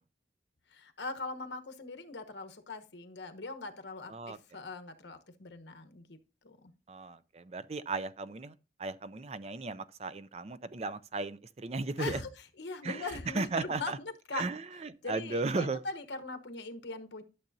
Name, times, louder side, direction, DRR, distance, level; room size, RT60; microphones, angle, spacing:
voice 1, 0.7-6.2 6.4-6.7 12.0-12.3 12.6-14.4 15.0-17.2, left 3 dB, 75° left, 1.1 m, -41 dB
voice 2, 6.9-8.5 8.8-12.2 12.8-14.0 14.3-15.8, right 3 dB, 35° right, 0.4 m, -36 dB
12.0 x 6.7 x 2.7 m
head